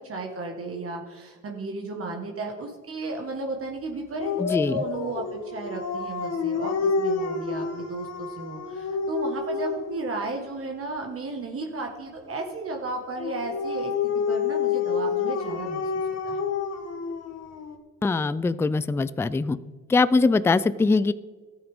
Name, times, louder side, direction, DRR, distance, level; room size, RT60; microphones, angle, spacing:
voice 1, 0.1-15.9 16.2-16.4, right 3 dB, 50° right, 2 dB, 1.6 m, -34 dB
Dog, 4.2-10.0 13.2-17.8, left 5 dB, 60° left, 1.3 m, -28 dB
voice 2, 4.4-4.8 18.0-19.6 19.9-21.1, left 3 dB, 10° left, 16 dB, 0.3 m, -22 dB
14.0 x 8.8 x 3.6 m, 1.4 s
cardioid pair, 90°, 30 cm